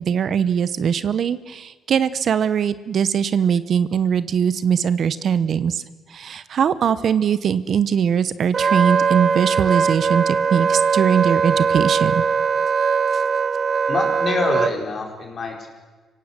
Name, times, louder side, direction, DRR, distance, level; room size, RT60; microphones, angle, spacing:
voice 1, 0.0-5.8 6.1-12.2, right 7 dB, 60° right, 14 dB, 0.9 m, -21 dB
Wind instrument woodwind instrument, 8.5-14.7, right 6 dB, 45° right, 1.1 m, -20 dB
voice 2, 13.9-15.7, left 3 dB, 50° left, 1 dB, 4.8 m, -25 dB
26.0 x 17.5 x 8.1 m, 1.3 s
cardioid pair, 90°, 0 cm